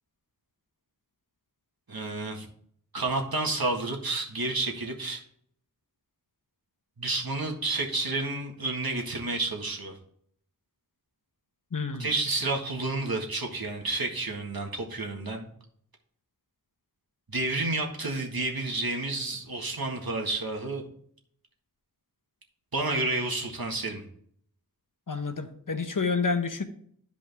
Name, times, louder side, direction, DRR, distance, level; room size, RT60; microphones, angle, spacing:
voice 1, 1.9-2.5 2.9-5.2 7.0-10.0 12.0-15.5 17.3-20.8 22.7-24.0, right 2 dB, 75° right, 1 dB, 1.8 m, -30 dB
voice 2, 11.7-12.1 25.1-26.6, left 4 dB, 60° left, 8 dB, 1.0 m, -29 dB
11.5 x 5.1 x 3.5 m, 0.63 s
wide cardioid pair, 45°, 36 cm